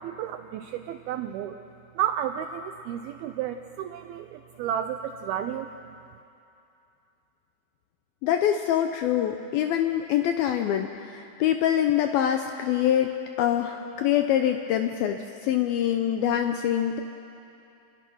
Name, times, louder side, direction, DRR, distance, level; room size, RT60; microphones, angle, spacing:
voice 1, 0.0-1.6 2.0-5.7, right 10 dB, 85° right, 8 dB, 2.2 m, -32 dB
voice 2, 8.2-17.0, left 10 dB, 80° left, 6 dB, 2.2 m, -25 dB
27.5 x 21.0 x 6.3 m, 2.7 s
omnidirectional pair, 5.1 m